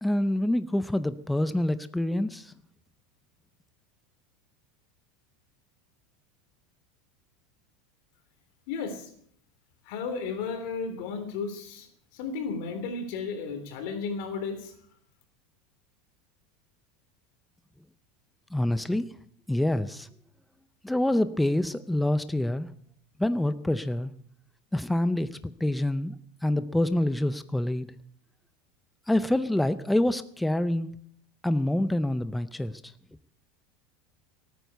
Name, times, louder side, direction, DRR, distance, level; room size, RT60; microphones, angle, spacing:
voice 1, 0.0-2.5 18.5-19.1 19.5-20.1 20.8-22.7 23.2-24.1 24.7-26.1 26.4-27.9 29.1-30.9 31.4-32.9, left 1 dB, 5° left, 12 dB, 0.6 m, -26 dB
voice 2, 8.7-9.1 9.8-11.9 12.1-14.7, left 5 dB, 65° left, 7 dB, 3.3 m, -33 dB
19.0 x 9.4 x 6.8 m, 0.63 s
supercardioid pair, 140°, 0 cm